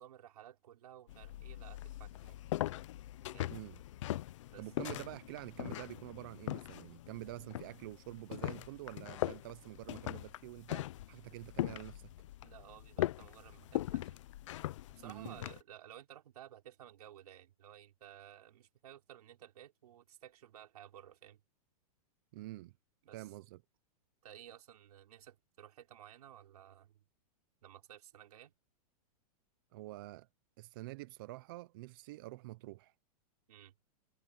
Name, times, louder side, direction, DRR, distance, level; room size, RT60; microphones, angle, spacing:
voice 1, 0.0-2.4 3.3-3.6 4.5-4.6 12.4-14.2 14.9-21.4 23.0-23.3 24.2-27.0 27.6-28.5 33.5-33.7, right 11 dB, 80° right, 4.3 m, -55 dB
sound 1, 1.1-15.6, left 14 dB, 55° left, 0.5 m, -41 dB
voice 2, 3.2-3.8 4.6-12.1 15.0-15.4 22.3-22.7 23.1-23.6 29.7-30.3 30.6-32.9, right 18 dB, 35° right, 0.5 m, -47 dB
supercardioid pair, 175°, 19 cm